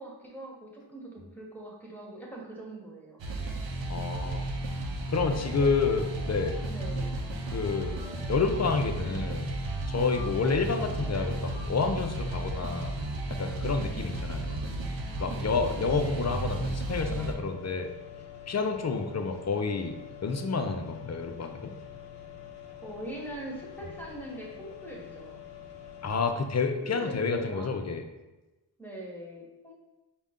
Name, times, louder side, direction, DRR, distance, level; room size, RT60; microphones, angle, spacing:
voice 1, 0.0-3.2 5.6-5.9 6.7-7.1 15.3-15.7 22.8-25.4 26.6-27.7 28.8-29.7, right 1 dB, 5° left, -3 dB, 1.1 m, -42 dB
sound 1, 3.2-17.3, right 1 dB, 80° right, 0.7 m, -33 dB
voice 2, 3.9-4.5 5.1-6.6 7.5-8.0 8.3-9.5 9.9-12.9 13.3-14.6 15.2-17.9 18.5-21.7 26.0-28.0, left 4 dB, 40° left, 5 dB, 0.5 m, -29 dB
sound 2, 5.4-13.4, equal, 15° right, 0.6 m, -52 dB
sound 3, 17.4-26.3, left 9 dB, 65° left, 0.8 m, -46 dB
5.0 x 2.2 x 3.6 m, 1.1 s
cardioid pair, 70°, 45 cm